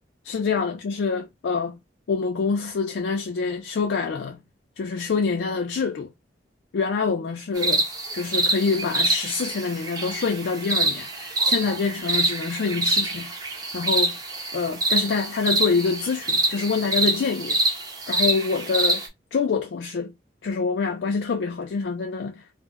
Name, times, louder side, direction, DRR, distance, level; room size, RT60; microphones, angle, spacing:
voice 1, 0.3-1.8 2.1-4.4 4.8-6.1 6.7-7.8 8.1-13.3 13.7-14.2 14.5-17.6 18.1-19.0 19.3-20.1 20.4-22.4, left 5 dB, 75° left, 0.4 m, -26 dB
sound 1, 7.6-19.1, right 2 dB, 20° right, 0.6 m, -25 dB
2.1 x 2.0 x 3.5 m
head